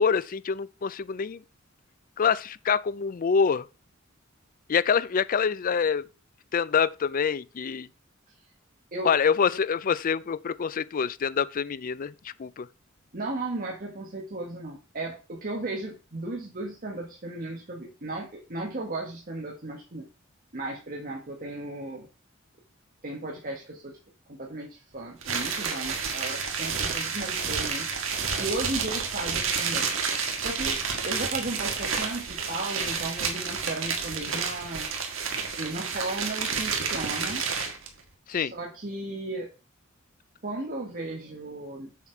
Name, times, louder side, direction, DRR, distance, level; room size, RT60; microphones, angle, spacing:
voice 1, 0.0-1.4 2.2-3.7 4.7-6.1 6.5-7.9 9.0-12.7 38.3-38.5, left 6 dB, 45° left, 0.4 m, -26 dB
voice 2, 13.1-20.1 20.5-22.1 23.0-24.0 24.3-27.9 28.4-29.9 30.4-30.8 31.0-34.9 35.2-37.4 38.3-39.5 40.4-41.9, right 2 dB, 45° right, 1.5 m, -35 dB
sound 1, 25.2-37.9, right 5 dB, 75° right, 1.8 m, -30 dB
7.4 x 5.9 x 4.6 m
head